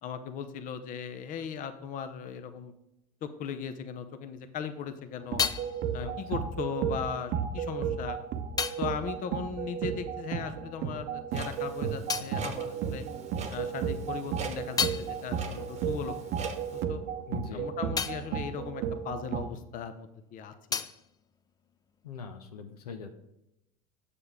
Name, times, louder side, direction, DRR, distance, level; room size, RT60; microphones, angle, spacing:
voice 1, 0.0-2.7 3.2-5.5 5.9-8.2 8.8-13.0 13.5-16.4 16.7-17.0 17.5-20.9, left 7 dB, 45° left, 10 dB, 0.7 m, -38 dB
sound 1, 4.7-10.6 10.8-13.5 13.9-20.0 20.2-22.2, left 6 dB, 20° left, 0.4 m, -38 dB
sound 2, 5.3-19.5, right 7 dB, 55° right, 0.7 m, -34 dB
voice 2, 5.9-6.4 12.2-12.5 17.3-17.7 22.0-23.1, left 6 dB, 85° left, 6 dB, 0.7 m, -42 dB
Clock, 11.3-16.8, right 6 dB, 35° right, 1.0 m, -43 dB
6.9 x 6.7 x 3.5 m, 0.85 s
hypercardioid pair, 80°, 19 cm